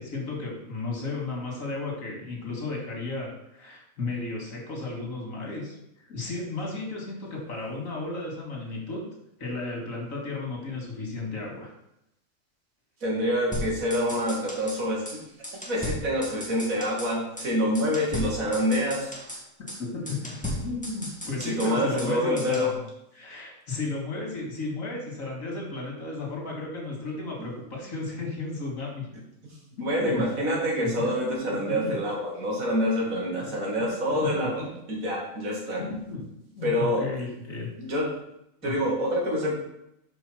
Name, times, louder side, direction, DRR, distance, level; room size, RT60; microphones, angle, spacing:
voice 1, 0.0-9.0 9.4-11.7 19.6-22.8 23.1-29.1 29.8-30.1 31.0-31.1 31.4-31.9 33.4-33.5 33.8-33.9 34.2-34.7 35.8-36.2 36.5-37.7 38.6-38.8, left 3 dB, 75° left, -1 dB, 2.5 m, -34 dB
voice 2, 13.0-15.2 15.6-19.1 21.4-22.7 29.8-34.5 34.9-35.8 36.6-37.1 37.8-38.1 38.6-39.5, equal, 85° right, -1 dB, 2.3 m, -26 dB
sound 1, 13.5-14.8 15.1-15.2 15.4-17.1 17.4-17.5 17.7-19.4 19.7-19.8 20.1-22.1 22.4-22.7, equal, 5° left, 1.4 m, -36 dB
5.5 x 5.1 x 6.2 m, 0.82 s
omnidirectional pair, 1.4 m